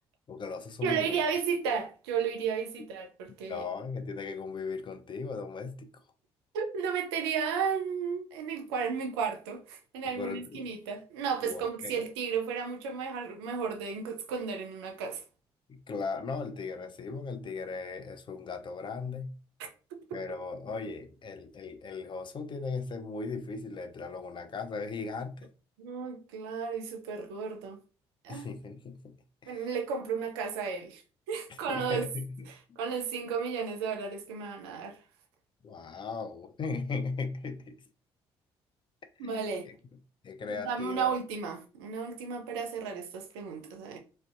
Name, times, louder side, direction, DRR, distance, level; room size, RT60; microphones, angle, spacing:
voice 1, 0.3-1.2 3.5-5.9 10.0-10.7 11.4-12.0 15.7-19.3 20.1-25.5 28.3-29.2 29.4-29.8 31.5-32.8 35.6-37.8 39.2-39.7 40.2-41.1, left 4 dB, 40° left, 0.5 m, -38 dB
voice 2, 0.8-3.6 6.5-15.2 19.6-20.4 25.8-27.8 28.2-28.5 29.5-31.0 31.3-32.1 32.5-35.0 39.2-39.7 40.5-44.0, right 6 dB, 85° right, 0.4 m, -33 dB
2.5 x 2.2 x 2.4 m
hypercardioid pair, 55°, 13 cm